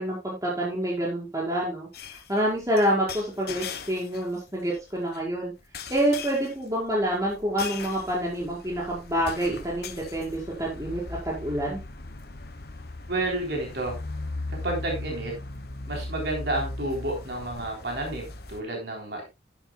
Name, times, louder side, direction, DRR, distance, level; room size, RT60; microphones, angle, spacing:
voice 1, 0.0-1.9 2.3-5.5 5.9-11.8, right 1 dB, 15° right, -3 dB, 5.3 m, -27 dB
sound 1, 1.9-4.4 4.7-5.2 5.7-18.6, left 3 dB, 55° left, 1.3 m, -38 dB
voice 2, 13.1-13.9 14.6-15.3 15.9-19.2, right 2 dB, 60° right, 0 dB, 3.6 m, -30 dB
12.0 x 11.0 x 2.3 m, 0.24 s
head